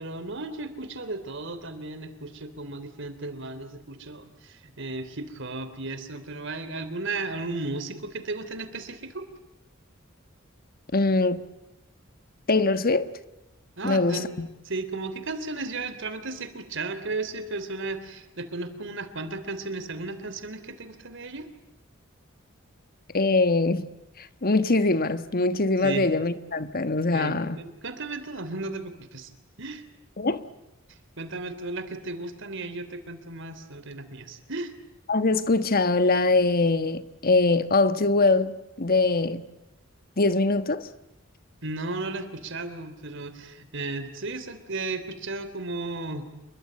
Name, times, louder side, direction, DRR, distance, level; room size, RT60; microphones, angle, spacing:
voice 1, 0.0-9.3 13.8-14.3 14.7-21.5 25.8-26.1 27.1-29.3 29.6-29.8 31.2-34.7 41.6-46.3, right 3 dB, 65° right, 3.5 m, -35 dB
voice 2, 10.9-11.4 12.5-13.1 13.8-14.5 23.1-23.9 24.2-27.6 30.2-30.4 35.1-39.4 40.2-40.9, left 3 dB, 45° left, 1.4 m, -23 dB
28.0 x 23.0 x 8.9 m
head